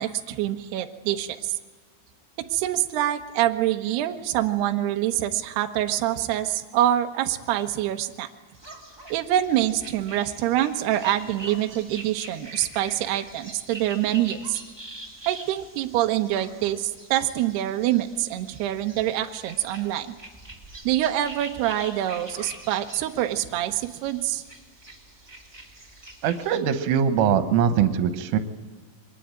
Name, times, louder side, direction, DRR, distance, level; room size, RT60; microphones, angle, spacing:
voice 1, 0.0-1.5 2.5-8.3 9.1-14.6 15.3-20.1 20.8-24.4, right 13 dB, 70° right, 5 dB, 2.8 m, -25 dB
sound 1, 8.5-26.6, right 2 dB, 10° right, 1.7 m, -44 dB
voice 2, 26.2-28.4, right 8 dB, 85° right, 9 dB, 3.8 m, -22 dB
24.0 x 20.0 x 9.0 m, 1.4 s
omnidirectional pair, 5.6 m